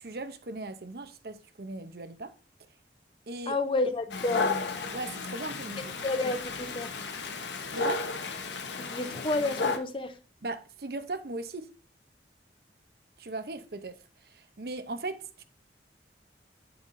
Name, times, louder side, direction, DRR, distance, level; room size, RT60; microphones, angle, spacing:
voice 1, 0.0-2.3 3.3-3.6 4.9-6.1 7.7-8.0 10.4-11.7 13.2-14.0 14.2-15.4, right 2 dB, 60° right, 0.8 m, -38 dB
voice 2, 3.5-4.5 6.0-6.9 8.8-10.2, left 2 dB, 30° left, 0.6 m, -30 dB
Dog, 4.1-9.8, left 3 dB, 85° left, 1.0 m, -33 dB
9.1 x 7.0 x 2.6 m
head